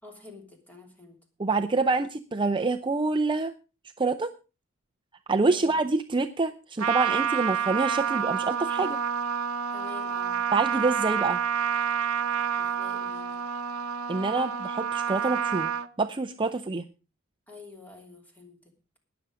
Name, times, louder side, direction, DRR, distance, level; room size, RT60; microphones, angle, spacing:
voice 1, 0.0-1.2 5.5-5.7 9.7-10.4 12.5-13.4 17.5-18.6, left 3 dB, 10° left, 2 dB, 3.0 m, -47 dB
voice 2, 1.4-3.5 4.0-4.3 5.3-9.0 10.5-11.4 14.1-15.7 16.0-16.8, right 3 dB, 25° right, 7 dB, 0.5 m, -26 dB
Trumpet, 6.8-15.9, right 7 dB, 80° right, 0.8 m, -28 dB
19.0 x 7.0 x 4.9 m, 0.33 s
head